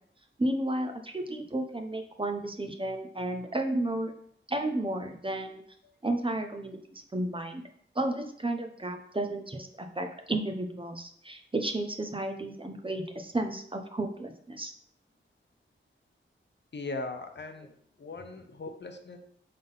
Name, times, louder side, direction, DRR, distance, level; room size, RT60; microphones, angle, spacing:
voice 1, 0.4-4.1 4.5-5.6 6.0-7.6 7.9-14.7, right 1 dB, 25° right, 5 dB, 0.8 m, -32 dB
voice 2, 16.7-17.7 18.0-19.2, left 3 dB, 60° left, 5 dB, 0.9 m, -39 dB
5.5 x 3.9 x 5.5 m, 0.65 s
wide cardioid pair, 75°, 20 cm